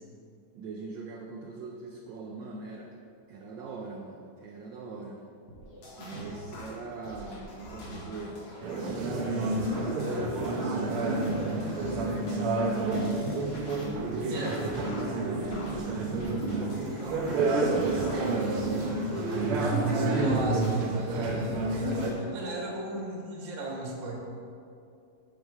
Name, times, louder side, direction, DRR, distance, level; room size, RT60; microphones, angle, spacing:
voice 1, 0.5-2.9 3.3-5.2 6.0-8.4 9.3-12.0 12.4-13.6 14.0-19.5, right 3 dB, 70° right, 0 dB, 1.2 m, -41 dB
sound 1, 5.5-12.4 12.8-20.8 21.2-22.1, equal, 70° left, 2.4 m, -45 dB
sound 2, 8.6-22.1, right 2 dB, 90° right, 1.8 m, -29 dB
voice 2, 20.1-24.1, right 2 dB, 40° right, -1 dB, 1.3 m, -36 dB
7.3 x 6.3 x 4.6 m, 2.5 s
omnidirectional pair, 2.4 m